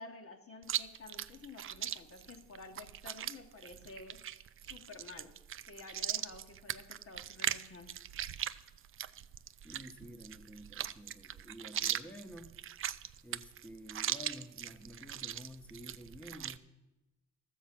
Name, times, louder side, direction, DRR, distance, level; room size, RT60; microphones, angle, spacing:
voice 1, 0.0-4.3 4.6-5.4 5.6-8.0, left 3 dB, 50° left, 5 dB, 1.1 m, -51 dB
Chewing mastication, 0.6-16.6, right 10 dB, 45° right, 0.4 m, -40 dB
voice 2, 9.6-12.6 13.2-16.7, equal, 5° left, 5 dB, 1.0 m, -50 dB
13.0 x 7.4 x 5.9 m, 1.0 s
cardioid pair, 85°, 30 cm